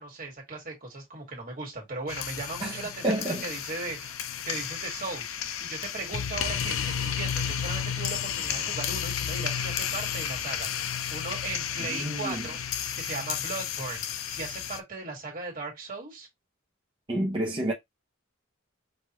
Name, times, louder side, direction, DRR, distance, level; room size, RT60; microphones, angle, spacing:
voice 1, 0.0-5.3 5.6-12.6 12.9-16.3, right 3 dB, 45° right, 1.8 m, -38 dB
sound 1, 2.1-14.8, left 8 dB, 80° left, 0.5 m, -32 dB
voice 2, 3.0-3.4 11.9-12.4 17.1-17.7, right 1 dB, 25° right, 0.9 m, -29 dB
5.5 x 2.6 x 2.9 m
head